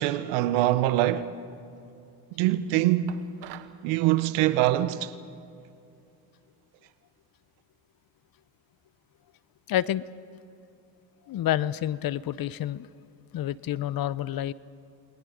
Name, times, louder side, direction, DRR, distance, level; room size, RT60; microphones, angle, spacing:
voice 1, 0.0-1.3 2.3-3.2 3.8-5.1, right 14 dB, 85° right, 1.1 m, -24 dB
sound 1, 3.1-3.8, right 13 dB, 65° right, 1.3 m, -45 dB
voice 2, 9.7-10.0 11.3-12.9 13.3-14.5, left 12 dB, 50° left, 0.8 m, -28 dB
29.0 x 22.0 x 5.2 m
supercardioid pair, 85°, 45 cm